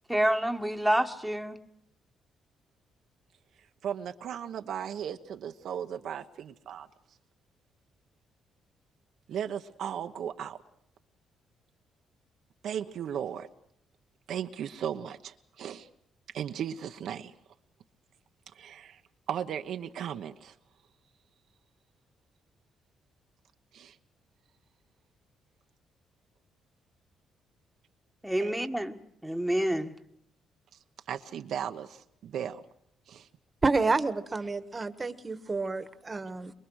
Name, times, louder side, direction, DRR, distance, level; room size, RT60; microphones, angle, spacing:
voice 1, 0.1-1.6 28.2-29.0 29.2-29.9, right 1 dB, 5° right, 1.6 m, -28 dB
voice 2, 3.8-6.9 9.3-10.6 12.6-13.5 14.3-15.9 16.3-17.3 18.5-19.0 19.3-20.5 23.7-24.0 28.4-28.5 31.1-32.6 33.1-33.3, right 9 dB, 70° right, 1.0 m, -36 dB
voice 3, 33.6-36.5, right 3 dB, 25° right, 1.5 m, -29 dB
24.0 x 22.5 x 6.4 m
cardioid pair, 90°, 0 cm